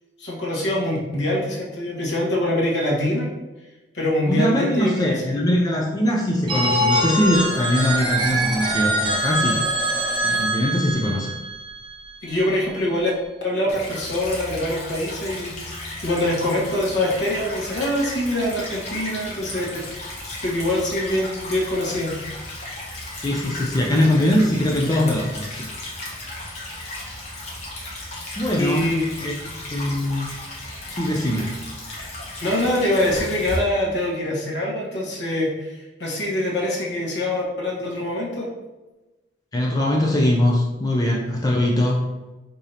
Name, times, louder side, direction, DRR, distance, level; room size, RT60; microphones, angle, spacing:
voice 1, 0.2-3.3 3.9-5.1 12.2-13.1 13.4-22.2 28.6-29.3 32.4-38.5, left 1 dB, 75° left, -3 dB, 1.3 m, -24 dB
voice 2, 4.3-9.6 10.2-11.4 23.2-25.7 28.4-29.0 29.2-29.3 29.7-30.3 30.9-31.7 39.5-42.1, left 1 dB, 20° left, -1 dB, 0.5 m, -21 dB
Telephone, 6.5-12.3, right 1 dB, 30° right, 0.9 m, -24 dB
Stream / Trickle dribble, 13.7-33.6, left 1 dB, 40° left, 1.3 m, -35 dB
5.0 x 3.7 x 2.8 m, 1.1 s
head